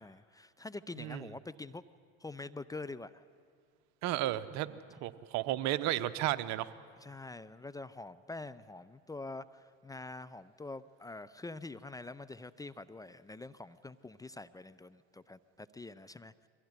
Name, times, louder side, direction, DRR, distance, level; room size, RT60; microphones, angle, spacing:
voice 1, 0.0-1.8 2.2-3.2 7.0-16.5, left 2 dB, 10° left, 14 dB, 0.5 m, -45 dB
voice 2, 4.0-6.7, right 14 dB, 65° right, 13 dB, 0.9 m, -33 dB
22.5 x 16.0 x 9.7 m, 2.2 s
supercardioid pair, 85°, 30 cm